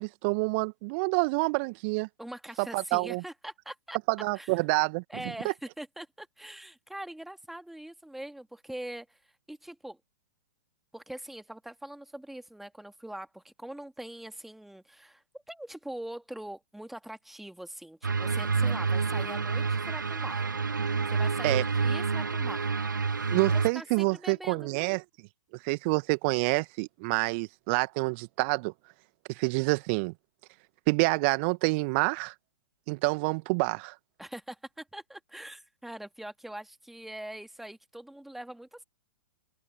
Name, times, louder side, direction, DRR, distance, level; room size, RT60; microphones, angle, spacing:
voice 1, 0.0-2.1 2.6-3.2 4.1-5.0 21.4-21.6 23.3-25.0 25.6-28.7 29.3-30.1 30.9-32.3 32.9-33.9, right 30 dB, 40° right, 1.7 m, -27 dB
voice 2, 2.2-4.0 4.3-4.5 5.1-9.2 9.5-10.0 10.9-20.4 21.1-22.7 23.5-24.7 34.2-38.8, right 1 dB, ahead, 2.4 m, -43 dB
sound 1, 18.0-23.7, right 4 dB, 85° right, 0.4 m, -28 dB
figure-of-eight pair, 110°, 10 cm